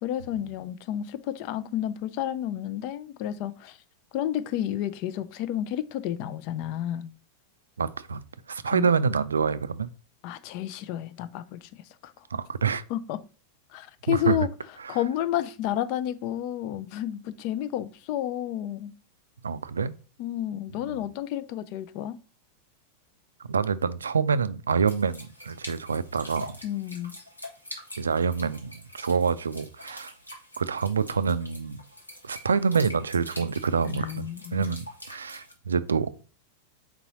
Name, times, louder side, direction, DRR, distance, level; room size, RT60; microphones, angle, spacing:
voice 1, 0.0-3.8 4.1-7.1 8.7-8.9 10.2-12.2 12.9-13.2 13.7-14.5 14.9-18.9 20.2-22.2 26.6-27.2 33.9-34.8, left 12 dB, 45° left, 0.4 m, -31 dB
voice 2, 7.8-8.2 8.5-9.9 12.3-12.8 14.1-14.4 14.8-15.0 19.4-19.9 20.8-20.9 23.4-26.6 28.0-30.1 30.6-31.8 32.2-36.1, right 5 dB, 70° right, 0.3 m, -27 dB
sound 1, 24.8-35.5, left 1 dB, 85° left, 1.2 m, -45 dB
4.6 x 3.9 x 2.9 m
figure-of-eight pair, 90°, 0 cm